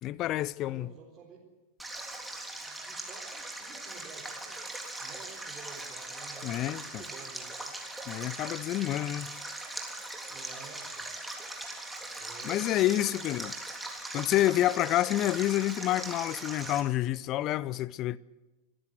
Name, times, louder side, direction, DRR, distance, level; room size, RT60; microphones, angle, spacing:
voice 1, 0.0-0.9 6.4-6.8 8.1-9.3 12.4-13.6 14.1-18.2, left 14 dB, 35° left, 0.6 m, -28 dB
voice 2, 0.6-1.4 1.9-2.1 2.6-4.6 5.0-7.7 10.3-11.1 12.2-13.0 14.7-15.3, right 5 dB, 25° right, 4.1 m, -51 dB
Stream, 1.8-16.8, right 2 dB, 5° right, 3.5 m, -40 dB
26.0 x 14.5 x 8.1 m
figure-of-eight pair, 90°, 0 cm